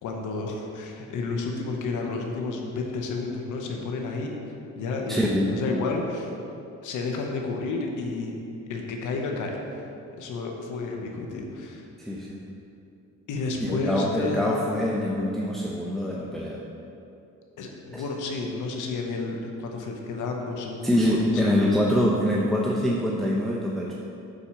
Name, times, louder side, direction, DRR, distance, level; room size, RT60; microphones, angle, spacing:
voice 1, 0.0-4.3 4.8-6.3 6.8-8.3 8.7-9.5 10.2-11.8 13.3-14.5 17.6-21.4, left 3 dB, 85° left, 1 dB, 1.1 m, -31 dB
voice 2, 5.1-5.5 12.0-12.4 13.6-16.6 17.9-18.0 20.8-23.9, equal, ahead, -4 dB, 0.8 m, -24 dB
8.9 x 4.4 x 5.9 m, 2.7 s
cardioid pair, 90°, 30 cm